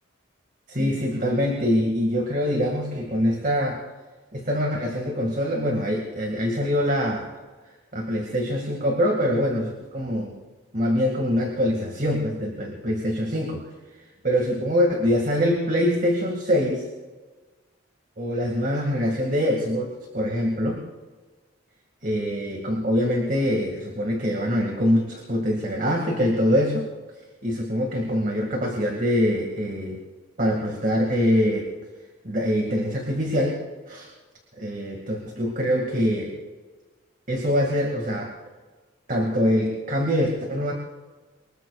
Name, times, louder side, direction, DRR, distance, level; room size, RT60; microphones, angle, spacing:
voice 1, 0.7-3.8 4.3-7.4 7.9-10.3 10.7-13.7 14.2-16.9 18.2-20.8 22.0-26.9 27.4-30.0 30.4-31.7 32.2-33.6 33.9-34.1 34.6-36.4 37.3-38.3 39.1-40.7, equal, 40° right, 1 dB, 2.2 m, -24 dB
24.5 x 21.0 x 2.5 m, 1.3 s
head